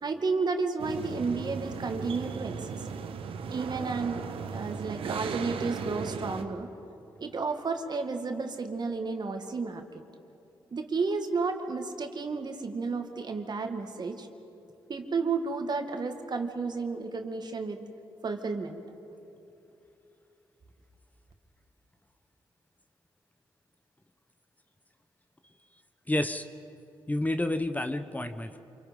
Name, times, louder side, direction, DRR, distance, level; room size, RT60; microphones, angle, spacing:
voice 1, 0.0-2.8 3.5-4.3 4.5-6.7 7.2-10.0 10.7-14.3 14.9-17.8 18.2-18.8, right 4 dB, 50° right, 5 dB, 2.1 m, -32 dB
sound 1, 0.8-6.4, right 6 dB, 75° right, 1.2 m, -36 dB
voice 2, 26.1-26.4 27.1-28.6, left 1 dB, 15° left, 9 dB, 1.1 m, -29 dB
28.0 x 23.5 x 5.4 m, 2.8 s
supercardioid pair, 50°, 9 cm